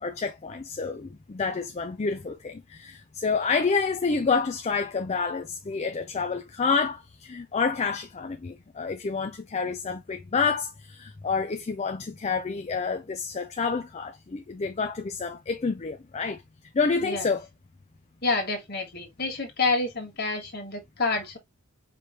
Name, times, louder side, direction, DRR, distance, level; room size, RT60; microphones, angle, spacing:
voice 1, 0.0-16.4 16.7-17.5, left 4 dB, 30° left, 0.4 m, -28 dB
voice 2, 18.2-21.4, left 3 dB, 45° left, 1.9 m, -28 dB
5.1 x 3.1 x 3.0 m
head